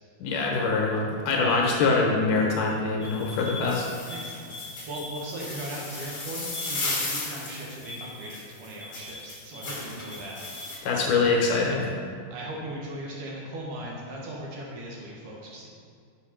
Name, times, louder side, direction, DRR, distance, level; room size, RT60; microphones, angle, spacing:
voice 1, 0.2-3.8 10.8-12.0, left 4 dB, 70° left, -1 dB, 2.3 m, -24 dB
sound 1, 3.0-10.8, left 2 dB, 40° left, 1.6 m, -36 dB
voice 2, 4.1-10.4 12.3-15.7, right 1 dB, 70° right, -3 dB, 2.4 m, -38 dB
7.1 x 4.6 x 5.7 m, 2.2 s
omnidirectional pair, 4.1 m